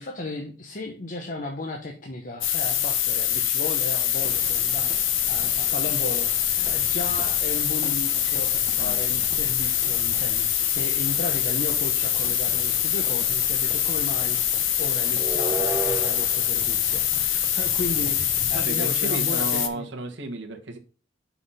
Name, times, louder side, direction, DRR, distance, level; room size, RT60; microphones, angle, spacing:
voice 1, 0.0-4.9 5.3-19.9, left 2 dB, 45° left, 1 dB, 1.0 m, -35 dB
sound 1, 2.4-19.7, left 10 dB, 85° left, 0.9 m, -24 dB
sound 2, 4.2-18.7, right 2 dB, 15° right, 0.6 m, -39 dB
voice 2, 18.5-20.8, right 2 dB, 65° right, 1 dB, 1.2 m, -33 dB
5.7 x 4.2 x 5.5 m, 0.40 s
head